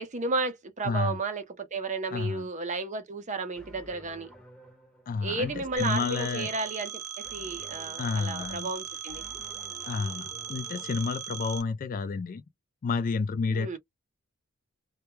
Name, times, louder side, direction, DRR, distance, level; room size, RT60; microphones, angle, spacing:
voice 1, 0.0-4.3 5.2-7.0 7.3-9.2 13.5-13.8, right 3 dB, 35° right, 0.6 m, -33 dB
voice 2, 0.9-1.2 2.1-2.5 5.1-6.5 8.0-8.7 9.9-10.2 10.5-12.4 12.8-13.8, left 4 dB, 40° left, 0.3 m, -30 dB
sound 1, 3.6-10.9, equal, 5° left, 0.8 m, -52 dB
Telephone, 5.8-11.6, right 9 dB, 90° right, 0.7 m, -39 dB
2.2 x 2.0 x 3.0 m
head